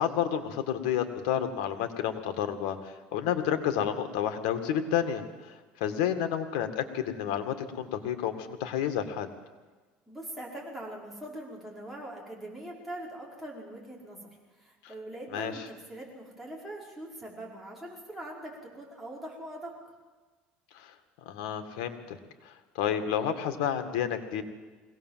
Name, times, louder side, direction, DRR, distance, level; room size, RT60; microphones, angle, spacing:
voice 1, 0.0-9.3 14.8-14.9 15.3-15.5 20.7-20.9 21.3-22.2 22.4-24.4, left 9 dB, 90° left, 7 dB, 2.1 m, -30 dB
voice 2, 10.1-19.7, right 1 dB, ahead, -4 dB, 5.4 m, -42 dB
21.5 x 18.0 x 7.6 m, 1.3 s
cardioid pair, 140°, 4 cm